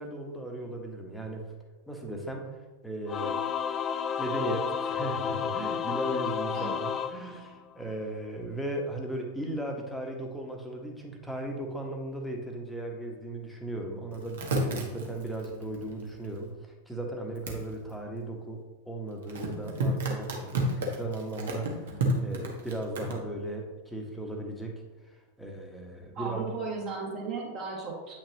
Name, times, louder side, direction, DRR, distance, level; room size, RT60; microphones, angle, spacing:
voice 1, 0.0-1.4 1.9-2.5 2.8-3.4 4.2-14.4 14.7-26.5, right 1 dB, 5° left, 1 dB, 1.2 m, -37 dB
Singing / Musical instrument, 3.1-7.9, left 7 dB, 25° left, 0.3 m, -31 dB
sound 1, 14.1-16.5 17.3-17.6 19.3-23.1, right 1 dB, 60° right, 1.3 m, -31 dB
voice 2, 26.1-28.1, right 4 dB, 40° right, -6 dB, 2.1 m, -35 dB
8.7 x 5.9 x 2.9 m, 1.2 s
figure-of-eight pair, 90°, 0 cm